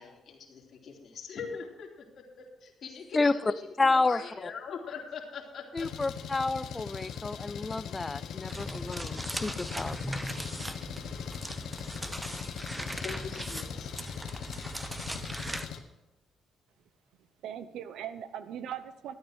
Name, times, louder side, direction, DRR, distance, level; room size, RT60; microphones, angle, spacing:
voice 1, 0.0-5.9 13.0-13.9, left 6 dB, 60° left, 0 dB, 2.9 m, -42 dB
voice 2, 3.8-4.5 5.7-10.2, left 3 dB, 25° left, 16 dB, 0.6 m, -30 dB
Engine, 5.8-15.8, left 8 dB, 75° left, 1.2 m, -40 dB
sound 1, 8.5-15.7, right 1 dB, 10° right, 0.8 m, -39 dB
voice 3, 17.1-19.1, right 9 dB, 80° right, 12 dB, 0.9 m, -40 dB
12.5 x 9.0 x 6.4 m, 0.96 s
cardioid pair, 90°, 0 cm